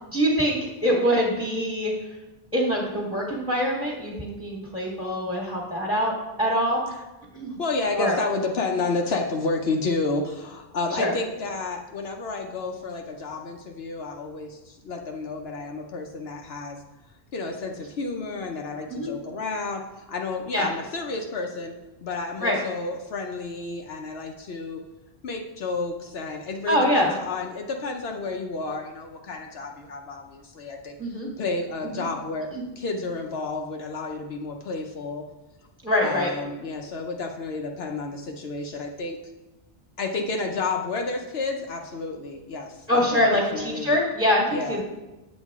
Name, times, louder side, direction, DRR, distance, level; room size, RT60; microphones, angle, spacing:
voice 1, 0.1-1.9 2.5-6.1 6.4-6.8 7.3-7.6 8.0-8.2 10.9-11.1 18.9-19.1 20.5-20.7 22.4-22.6 26.7-27.1 31.0-31.3 31.9-32.0 32.5-32.6 35.8-36.3 42.9-44.8, equal, 5° right, -4 dB, 1.6 m, -24 dB
voice 2, 7.6-16.8 17.3-21.7 22.0-24.8 25.2-32.5 32.8-35.2 36.0-39.2 40.0-44.0 44.5-44.8, left 3 dB, 75° left, 2 dB, 1.0 m, -31 dB
8.8 x 7.3 x 3.6 m, 1.0 s
omnidirectional pair, 1.1 m